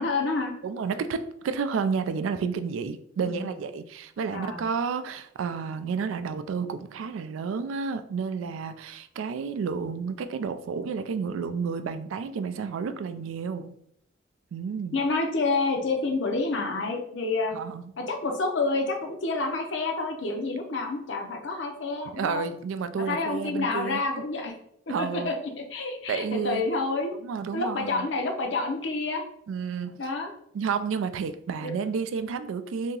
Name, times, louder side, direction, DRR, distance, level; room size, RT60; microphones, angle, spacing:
voice 1, 0.0-0.5 3.3-3.5 4.3-4.7 14.9-17.5 18.0-22.4 23.0-24.5 25.0-27.1 27.5-29.2 30.0-30.3 31.6-31.7, left 3 dB, 65° left, 3 dB, 0.6 m, -28 dB
voice 2, 0.6-13.7 14.5-15.0 17.5-17.8 22.1-24.0 24.9-25.4 26.1-26.7 27.1-28.1 29.5-30.0 30.5-33.0, right 5 dB, 85° right, 11 dB, 0.3 m, -31 dB
2.8 x 2.7 x 3.8 m, 0.70 s
head